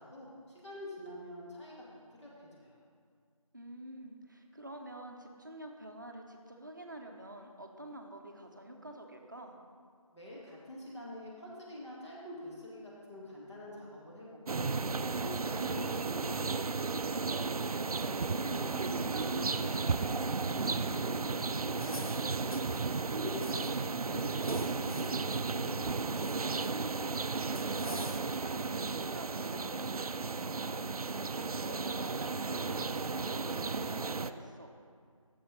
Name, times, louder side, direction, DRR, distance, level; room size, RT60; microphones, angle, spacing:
voice 1, 0.0-2.8 10.1-14.7 15.1-17.5 18.0-18.8 19.1-22.6 23.2-26.6, left 1 dB, 50° left, -6 dB, 2.2 m, -46 dB
voice 2, 3.5-9.6 27.8-28.1 28.4-34.7, right 1 dB, 35° right, 2 dB, 0.7 m, -48 dB
sound 1, 14.5-34.3, right 4 dB, 85° right, 0.4 m, -34 dB
sound 2, 21.7-23.9 24.2-25.4 25.8-26.9 27.5-28.5, left 2 dB, 80° left, 1.0 m, -50 dB
8.2 x 6.9 x 5.1 m, 2.1 s
figure-of-eight pair, 175°, 18 cm